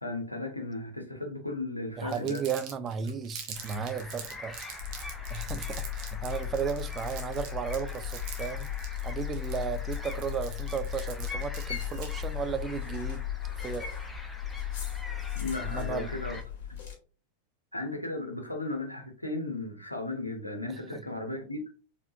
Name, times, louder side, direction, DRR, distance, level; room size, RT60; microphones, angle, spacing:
voice 1, 0.0-2.5 15.3-16.4 17.7-21.6, left 2 dB, 85° left, 0.9 m, -35 dB
voice 2, 2.0-4.5 5.3-8.7 9.0-13.3 13.6-13.9 15.6-16.1 20.7-21.0, right 7 dB, 25° right, 0.4 m, -34 dB
Crumpling crinkling, 2.1-12.3, right 7 dB, 45° right, 1.0 m, -45 dB
sound 1, 3.5-16.4, left 1 dB, 5° left, 0.7 m, -45 dB
sound 2, 4.8-16.9, left 11 dB, 45° left, 2.1 m, -36 dB
4.6 x 3.5 x 2.6 m
figure-of-eight pair, 90°, 0 cm